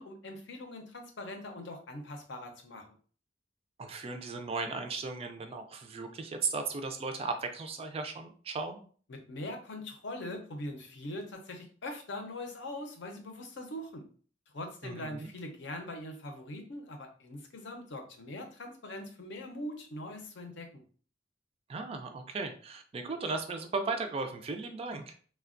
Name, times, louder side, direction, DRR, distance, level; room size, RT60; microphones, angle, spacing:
voice 1, 0.0-3.0 9.1-14.1 14.5-20.8, left 1 dB, 70° left, 4 dB, 0.6 m, -42 dB
voice 2, 3.8-8.8 14.8-15.3 21.7-25.1, right 4 dB, 30° right, 6 dB, 0.3 m, -36 dB
3.2 x 2.1 x 2.4 m, 0.43 s
head